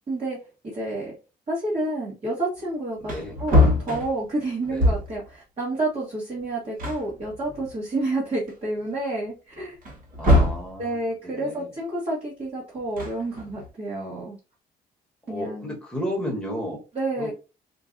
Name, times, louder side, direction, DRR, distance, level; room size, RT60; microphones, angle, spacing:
voice 1, 0.1-0.4 0.6-1.1 1.5-9.8 10.8-14.4 15.3-15.8 16.9-17.3, right 2 dB, 35° right, -6 dB, 1.3 m, -29 dB
Wood, 2.6-2.7 3.0-5.3 6.4-6.5 6.8-8.0 8.5-8.6 9.8-10.7 12.8-13.7, left 1 dB, 55° right, 1.2 m, -23 dB
voice 2, 3.0-3.3 4.7-4.9 10.2-10.9 11.2-11.7 15.3-16.8 17.2-17.3, equal, 5° left, -2 dB, 1.2 m, -32 dB
4.4 x 2.3 x 2.5 m, 0.31 s
cardioid pair, 130°, 17 cm